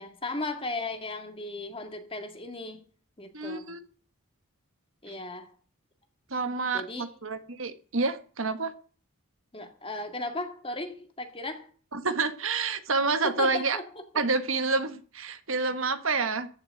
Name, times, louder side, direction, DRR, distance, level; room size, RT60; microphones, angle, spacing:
voice 1, 0.0-2.8 3.2-3.7 5.0-5.6 6.7-7.2 9.5-11.7 13.2-13.9, left 2 dB, 25° left, 2.0 m, -36 dB
voice 2, 3.3-3.8 6.3-8.7 11.9-13.8 14.1-16.5, right 3 dB, 70° right, 1.4 m, -28 dB
14.0 x 6.3 x 9.1 m
head